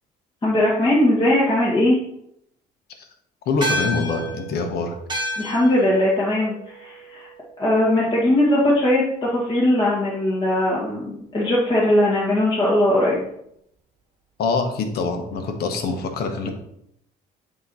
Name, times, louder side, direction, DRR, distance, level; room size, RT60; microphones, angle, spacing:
voice 1, 0.4-2.0 5.4-7.3 7.6-13.2, left 1 dB, 30° left, -6 dB, 1.8 m, -19 dB
voice 2, 3.5-4.9 14.4-16.5, left 4 dB, 70° left, 5 dB, 1.1 m, -24 dB
sound 1, 3.6-8.3, equal, 25° right, 1.2 m, -31 dB
8.5 x 3.1 x 4.1 m, 0.74 s
cardioid pair, 110°, 17 cm